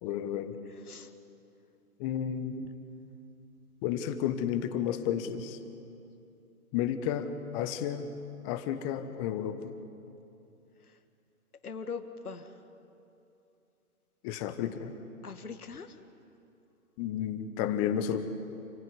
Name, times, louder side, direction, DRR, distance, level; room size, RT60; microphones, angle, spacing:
voice 1, 0.0-0.6 2.0-2.7 3.8-5.6 6.7-8.1 8.4-9.7 14.2-14.9 17.0-18.2, left 9 dB, 25° left, 10 dB, 1.2 m, -32 dB
voice 2, 0.7-1.1 10.9-11.0 11.6-12.6 15.2-16.0, left 5 dB, 80° left, 8 dB, 1.8 m, -42 dB
28.0 x 15.5 x 9.7 m, 2.7 s
hypercardioid pair, 135°, 44 cm